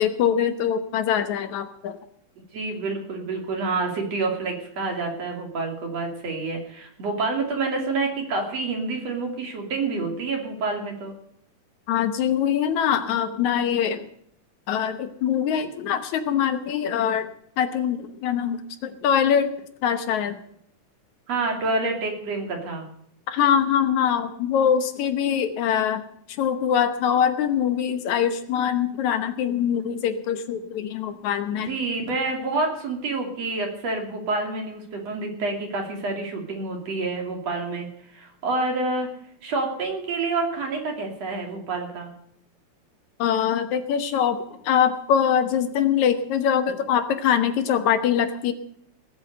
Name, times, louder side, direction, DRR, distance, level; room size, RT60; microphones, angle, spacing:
voice 1, 0.0-2.0 11.9-14.1 14.7-17.3 17.6-19.5 19.8-20.4 23.3-26.0 26.3-31.8 43.2-48.5, left 8 dB, 75° left, 9 dB, 2.3 m, -23 dB
voice 2, 2.5-11.1 21.3-22.9 31.6-37.9 38.1-39.1 39.4-42.1, right 3 dB, 55° right, 2 dB, 3.8 m, -28 dB
19.0 x 8.3 x 6.7 m, 0.69 s
omnidirectional pair, 3.5 m